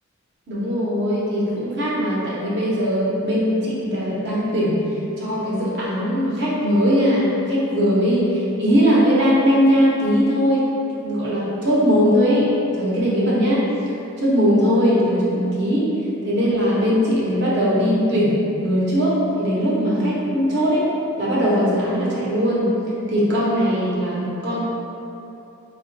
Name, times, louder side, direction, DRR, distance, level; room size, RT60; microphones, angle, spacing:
voice 1, 0.5-4.8 5.2-10.6 11.0-12.5 12.7-13.6 14.2-15.9 16.2-20.8 21.2-22.7 23.1-24.6, equal, 55° right, -7 dB, 0.8 m, -20 dB
4.2 x 2.3 x 2.7 m, 2.8 s
head